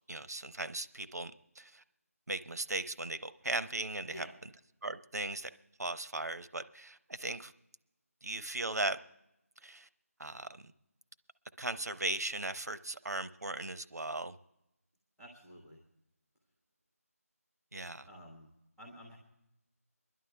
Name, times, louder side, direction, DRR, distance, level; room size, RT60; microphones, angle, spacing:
voice 1, 0.1-1.3 1.6-1.8 2.3-4.3 4.8-5.5 5.8-7.5 8.2-9.0 9.6-9.9 10.2-10.5 11.6-14.4 17.7-18.1, right 2 dB, 85° right, 0.8 m, -37 dB
voice 2, 4.1-4.4 15.2-15.8 18.0-18.5 18.8-19.2, equal, ahead, 1.3 m, -51 dB
24.5 x 11.0 x 3.4 m
figure-of-eight pair, 170°, 8 cm